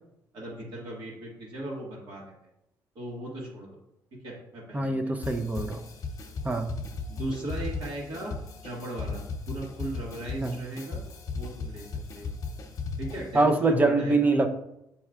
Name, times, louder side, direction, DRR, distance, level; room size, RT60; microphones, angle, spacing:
voice 1, 0.3-2.2 3.0-3.7 4.2-5.4 7.1-8.3 8.6-11.0 11.3-12.3 13.0-14.3, right 1 dB, 70° right, -5 dB, 1.8 m, -37 dB
voice 2, 4.7-5.8 6.4-6.7 10.4-10.6 13.3-14.5, right 3 dB, 20° right, 6 dB, 0.6 m, -24 dB
sound 1, 5.2-13.4, left 4 dB, 45° left, 1.0 m, -37 dB
7.5 x 5.4 x 2.4 m, 0.83 s
cardioid pair, 100°, 8 cm